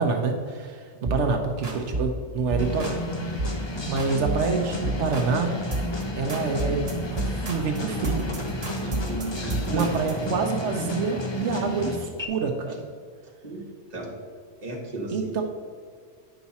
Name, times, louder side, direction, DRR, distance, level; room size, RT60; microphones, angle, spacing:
voice 1, 0.0-3.0 3.3-3.5 3.9-5.6 6.2-6.8 7.1-8.2 9.7-12.9 15.1-15.4, right 4 dB, 85° right, 3 dB, 1.1 m, -27 dB
sound 1, 1.0-1.3 1.6-2.1 2.5-3.0 3.4-3.6 4.0-4.5 4.8-5.4 5.7-6.0 6.3-10.2, right 2 dB, 60° right, 1.6 m, -31 dB
sound 2, 2.6-12.3, left 1 dB, 25° left, 0.8 m, -32 dB
voice 2, 8.7-9.9 13.4-13.6 13.9-14.2 14.6-15.4, right 1 dB, 35° right, -2 dB, 1.7 m, -34 dB
9.3 x 5.8 x 4.1 m, 2.1 s
omnidirectional pair, 1.2 m